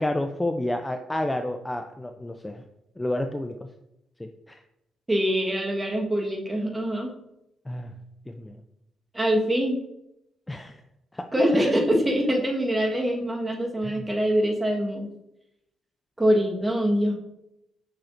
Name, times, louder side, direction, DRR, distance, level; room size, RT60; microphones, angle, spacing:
voice 1, 0.0-2.6 3.0-3.5 4.2-4.6 7.7-7.9 8.3-8.6 10.5-10.8 11.1-11.2 11.5-11.7 13.8-14.1, left 1 dB, 10° left, 6 dB, 0.4 m, -30 dB
voice 2, 5.1-7.1 9.1-9.8 11.3-15.1 16.2-17.2, equal, 15° right, 1 dB, 1.4 m, -24 dB
6.6 x 5.8 x 2.6 m, 0.85 s
cardioid pair, 90°, 0 cm